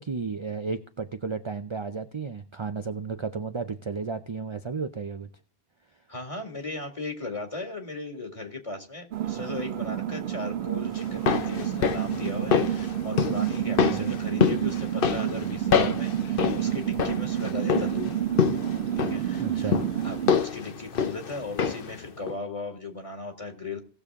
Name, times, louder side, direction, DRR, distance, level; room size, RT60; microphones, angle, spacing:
voice 1, 0.0-5.3 13.9-14.1 19.4-19.9, right 5 dB, 35° right, 8 dB, 0.5 m, -33 dB
voice 2, 6.1-18.2 19.0-19.8 20.0-23.8, left 3 dB, 30° left, 4 dB, 2.2 m, -37 dB
sound 1, 9.1-20.3, right 11 dB, 80° right, 1.0 m, -29 dB
sound 2, 11.0-22.0 22.3-22.4, left 7 dB, 60° left, 1.0 m, -27 dB
18.0 x 6.8 x 3.6 m, 0.41 s
omnidirectional pair, 1.1 m